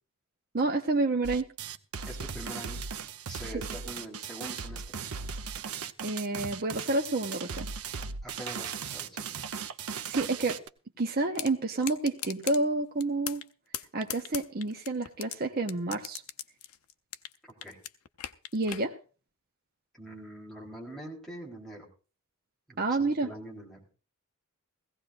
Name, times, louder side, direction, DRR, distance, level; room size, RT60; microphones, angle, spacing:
voice 1, 0.5-1.5 6.0-7.7 10.1-10.6 11.0-13.4 13.9-16.2 18.5-19.0 22.8-23.3, right 2 dB, 45° right, 2 dB, 0.8 m, -29 dB
sound 1, 1.2-10.7, right 6 dB, 85° right, 0.7 m, -37 dB
voice 2, 2.1-2.8 3.3-4.8 8.2-9.4 17.6-17.8 19.9-21.9 22.7-23.8, right 1 dB, ahead, -3 dB, 3.9 m, -44 dB
sound 2, 11.3-11.5 11.8-12.6 13.0-13.5 13.7-15.3 15.7-17.4 17.6-18.8, left 11 dB, 85° left, 0.7 m, -37 dB
17.5 x 16.0 x 2.6 m, 0.36 s
head